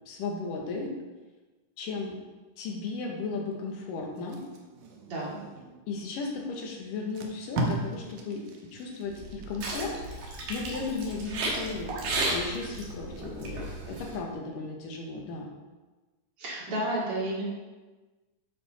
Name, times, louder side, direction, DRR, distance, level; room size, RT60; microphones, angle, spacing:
voice 1, 0.1-0.9 1.8-2.2 2.6-4.4 5.9-15.5, left 4 dB, 85° left, 0 dB, 2.8 m, -35 dB
Packing tape duct tape, 4.2-5.8 6.5-6.6 7.0-9.9 10.4-10.6, right 2 dB, 65° right, 2.0 m, -36 dB
sound 1, 9.1-14.2, right 2 dB, 85° right, 3.2 m, -34 dB
voice 2, 16.4-17.4, right 1 dB, 45° right, -5 dB, 2.8 m, -31 dB
10.5 x 4.9 x 4.1 m, 1.2 s
omnidirectional pair, 3.7 m